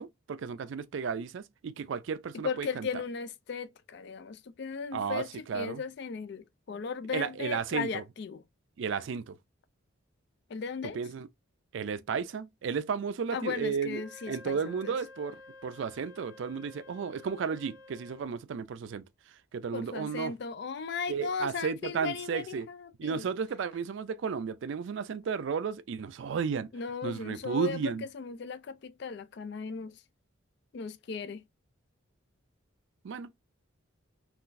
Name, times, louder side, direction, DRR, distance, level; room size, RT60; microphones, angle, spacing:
voice 1, 0.0-3.0 4.9-5.8 7.1-8.0 8.8-9.4 10.9-11.3 11.7-14.0 14.3-19.0 19.5-20.3 21.1-22.7 23.0-26.7 27.0-28.0 33.0-33.3, right 6 dB, 65° right, 0.3 m, -33 dB
voice 2, 2.4-8.4 10.5-11.0 13.3-15.0 19.7-23.3 26.7-29.9 30.7-31.4, left 5 dB, 55° left, 0.3 m, -37 dB
Wind instrument woodwind instrument, 13.8-18.3, left 3 dB, 90° left, 0.7 m, -52 dB
3.8 x 2.4 x 2.5 m
head